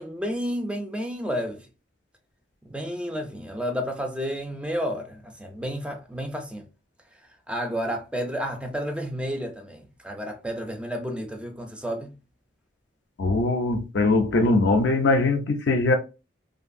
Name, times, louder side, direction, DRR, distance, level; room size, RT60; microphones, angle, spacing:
voice 1, 0.0-1.7 2.6-6.7 7.5-12.2, equal, 5° right, 0.4 m, -31 dB
voice 2, 13.2-15.9, left 2 dB, 60° left, 0.4 m, -21 dB
2.6 x 2.5 x 2.5 m
head